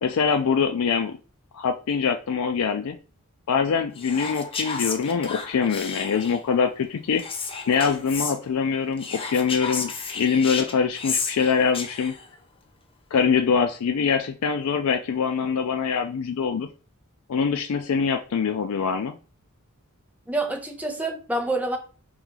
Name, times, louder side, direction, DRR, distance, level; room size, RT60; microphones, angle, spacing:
voice 1, 0.0-1.2 1.5-3.0 3.5-7.2 7.7-12.1 13.1-16.7 17.3-19.2, left 6 dB, 85° left, 6 dB, 0.4 m, -24 dB
Whispering, 4.0-6.5 7.2-8.4 9.0-12.3, left 5 dB, 25° left, 0.6 m, -32 dB
voice 2, 20.3-21.8, right 2 dB, 5° right, 2 dB, 0.8 m, -27 dB
4.0 x 3.0 x 3.6 m, 0.35 s
head